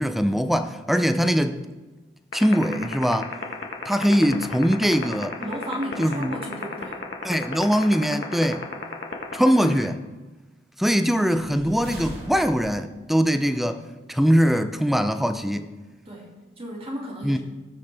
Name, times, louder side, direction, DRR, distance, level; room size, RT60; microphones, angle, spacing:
voice 1, 0.0-1.6 2.3-3.3 3.9-5.4 6.0-6.3 7.2-8.7 9.3-10.0 10.8-13.8 14.1-15.7 17.2-17.4, equal, ahead, 0.5 m, -22 dB
sound 1, 2.3-9.9, left 4 dB, 75° left, 1.4 m, -30 dB
voice 2, 5.4-7.0 16.1-17.4, equal, 35° right, 2.4 m, -34 dB
sound 2, 11.2-13.0, equal, 65° right, 2.7 m, -40 dB
18.5 x 6.4 x 3.4 m
head